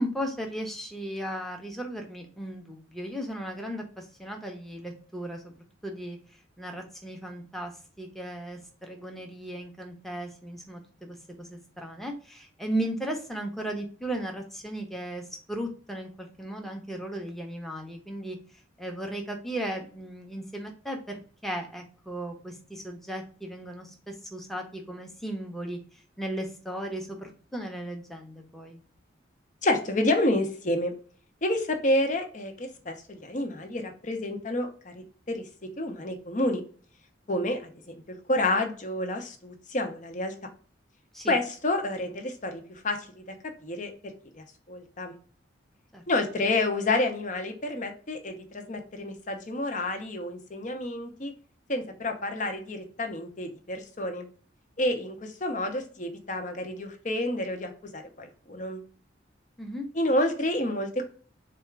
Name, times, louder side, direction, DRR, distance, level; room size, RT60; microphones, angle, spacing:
voice 1, 0.0-5.4 5.8-6.2 6.6-7.7 8.0-18.4 18.8-25.8 26.2-28.8 41.1-41.4 45.9-46.0 59.6-59.9, right 1 dB, ahead, 1 dB, 0.8 m, -36 dB
voice 2, 29.6-30.9 31.4-35.4 35.8-36.6 37.3-40.3 41.3-43.3 43.6-45.1 46.1-51.3 51.7-54.3 54.8-58.8 59.9-61.0, left 1 dB, 40° left, 5 dB, 0.8 m, -29 dB
4.2 x 2.4 x 4.5 m, 0.41 s
head